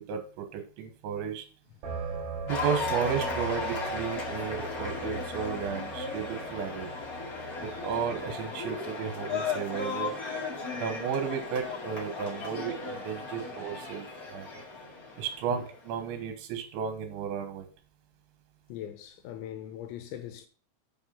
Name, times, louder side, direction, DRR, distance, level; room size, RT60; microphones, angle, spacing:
voice 1, 0.0-1.5 2.5-6.9 7.6-10.2 10.7-14.5 15.2-17.7, right 7 dB, 80° right, 3.5 m, -34 dB
sound 1, 1.8-8.4, right 5 dB, 55° right, 3.7 m, -39 dB
Cheering / Applause, 2.5-15.9, left 4 dB, 55° left, 1.0 m, -36 dB
voice 2, 18.7-20.5, left 11 dB, 85° left, 3.2 m, -41 dB
8.0 x 5.9 x 5.6 m
omnidirectional pair, 5.3 m